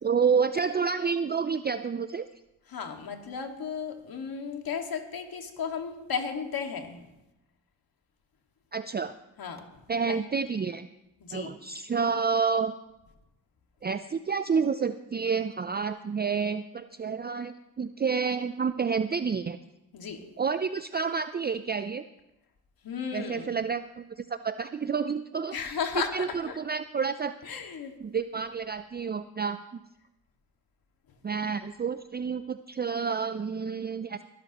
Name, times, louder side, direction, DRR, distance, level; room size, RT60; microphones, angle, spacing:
voice 1, 0.0-2.3 8.7-9.1 9.9-10.9 11.3-12.7 13.8-19.6 20.4-22.0 23.1-25.8 26.1-27.3 28.0-29.8 31.2-34.2, right 5 dB, 25° right, 11 dB, 0.5 m, -29 dB
voice 2, 2.7-7.0 9.4-9.6 10.1-10.2 11.2-11.5 19.9-20.2 22.8-23.5 25.5-26.1 26.5-26.6 27.4-27.9, left 6 dB, 65° left, 4 dB, 2.1 m, -34 dB
20.5 x 11.5 x 3.0 m, 0.92 s
supercardioid pair, 50°, 38 cm